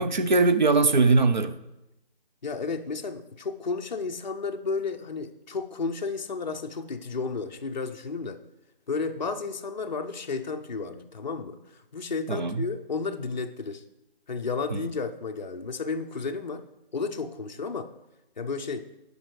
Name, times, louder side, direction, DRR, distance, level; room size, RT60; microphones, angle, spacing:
voice 1, 0.0-1.5 12.3-12.6 14.7-14.8, right 3 dB, 50° right, 0.5 m, -21 dB
voice 2, 2.4-8.4 8.9-13.8 14.3-16.6 16.9-17.9 18.4-18.9, left 4 dB, 50° left, 0.5 m, -32 dB
10.5 x 5.1 x 3.1 m
figure-of-eight pair, 170°, 29 cm